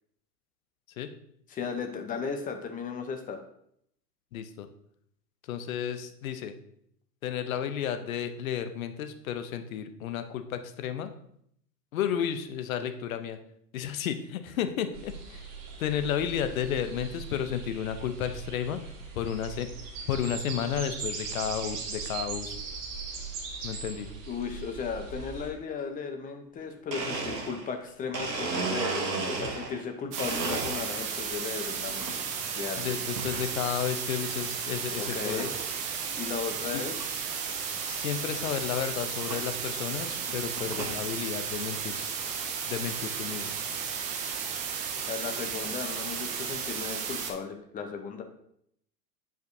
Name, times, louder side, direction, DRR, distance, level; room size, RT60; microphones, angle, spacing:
voice 1, 1.5-3.4 24.3-32.2 32.5-32.9 35.0-35.6 36.2-36.9 45.1-48.2, left 6 dB, 15° left, 6 dB, 0.7 m, -36 dB
voice 2, 4.3-4.7 5.5-6.5 7.2-11.1 11.9-13.4 13.7-15.5 15.8-18.8 19.1-19.7 20.1-22.5 23.6-24.1 32.8-35.5 36.7-36.8 37.9-42.0 42.7-43.6, left 9 dB, 55° left, 9 dB, 0.8 m, -32 dB
sound 1, 14.9-25.5, right 5 dB, 35° right, 1.4 m, -39 dB
Domestic sounds home sounds, 26.6-26.7 26.9-29.8 30.2-31.2 31.7-32.2 33.2-33.5 34.1-34.2 35.0-35.1 35.4-35.7 36.2-36.3 36.4-36.5 37.0-37.1 38.4-38.5 39.3-39.5 40.1-41.0, right 3 dB, 85° right, 1.2 m, -34 dB
sound 2, 30.1-47.3, right 7 dB, 15° right, 0.4 m, -34 dB
9.1 x 5.2 x 2.7 m, 0.71 s
figure-of-eight pair, 95°, 48 cm